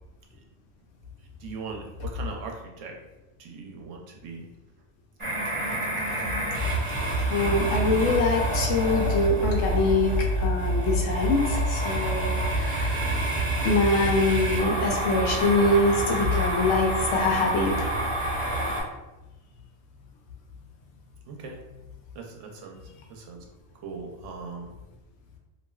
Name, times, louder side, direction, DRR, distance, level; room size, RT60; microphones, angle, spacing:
voice 1, 1.4-3.0 3.4-4.4 21.3-21.6 22.1-22.8 23.1-23.4 23.7-24.7, right 4 dB, 75° right, 2 dB, 0.9 m, -39 dB
sound 1, 5.2-18.8, right 1 dB, 30° right, 0.8 m, -27 dB
voice 2, 7.2-10.1 10.4-13.2 13.6-17.7, left 2 dB, 75° left, 0 dB, 1.0 m, -24 dB
3.1 x 2.5 x 2.2 m, 1.0 s
omnidirectional pair, 1.3 m